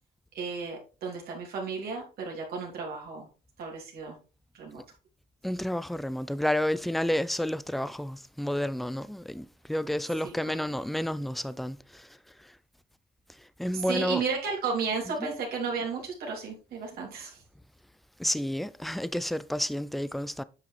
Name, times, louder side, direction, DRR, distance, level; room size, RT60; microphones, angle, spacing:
voice 1, 0.3-3.3 3.6-4.2 4.5-4.8 10.2-10.7 13.7-17.4, right 5 dB, 65° right, 3.0 m, -33 dB
voice 2, 5.4-12.6 13.4-14.2 15.2-15.3 18.2-20.4, left 1 dB, ahead, 0.4 m, -31 dB
8.9 x 6.1 x 3.3 m
cardioid pair, 110°, 17 cm